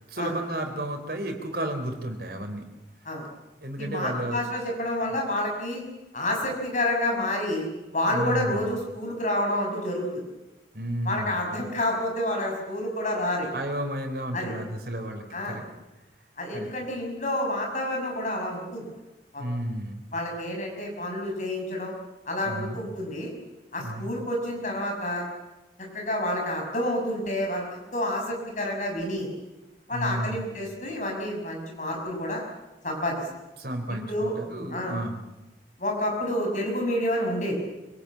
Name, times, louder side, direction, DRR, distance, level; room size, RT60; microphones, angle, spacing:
voice 1, 0.1-2.7 3.6-4.4 8.1-8.7 10.7-11.6 13.5-15.6 16.5-16.9 19.4-20.0 22.4-22.8 23.8-24.1 29.9-30.5 33.6-35.2, right 1 dB, 60° right, 4 dB, 3.8 m, -32 dB
voice 2, 3.8-5.8 6.1-7.7 7.9-10.2 11.0-13.5 14.3-14.5 15.3-15.6 16.4-18.8 19.3-19.4 20.1-21.9 22.3-23.3 23.7-25.2 25.9-27.6 27.9-29.3 29.9-32.4 32.8-33.2 34.0-34.4 34.7-34.9 35.8-37.6, left 1 dB, 45° left, 1 dB, 6.3 m, -29 dB
25.5 x 18.0 x 8.6 m, 1.0 s
head